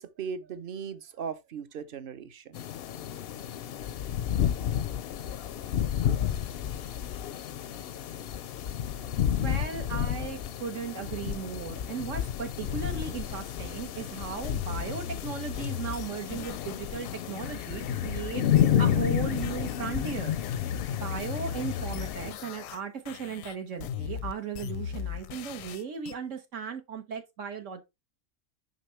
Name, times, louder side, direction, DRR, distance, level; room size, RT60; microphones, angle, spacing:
voice 1, 0.0-2.6, right 6 dB, 50° right, 0.8 m, -38 dB
sound 1, 2.5-22.3, left 10 dB, 65° left, 0.6 m, -31 dB
voice 2, 9.3-18.4 18.8-20.4 20.9-27.8, right 6 dB, 75° right, 1.3 m, -37 dB
sound 2, 14.4-19.8 20.1-22.8 23.1-26.1, left 8 dB, 85° left, 1.0 m, -37 dB
6.5 x 5.5 x 3.2 m
omnidirectional pair, 1.4 m